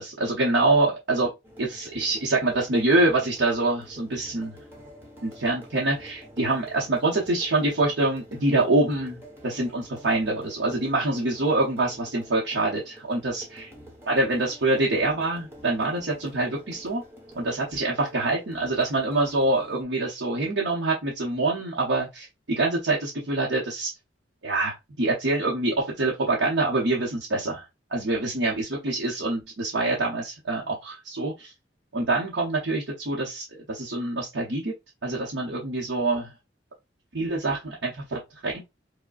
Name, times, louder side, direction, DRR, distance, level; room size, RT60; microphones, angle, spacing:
voice 1, 0.0-1.3 1.6-4.6 5.2-13.7 14.1-17.0 17.4-23.9 24.4-27.6 27.9-31.5 31.9-34.7 35.0-36.3 37.1-38.6, right 2 dB, 75° right, 0.9 m, -25 dB
sound 1, 1.4-19.8, equal, 15° right, 1.2 m, -48 dB
4.8 x 2.2 x 2.4 m
head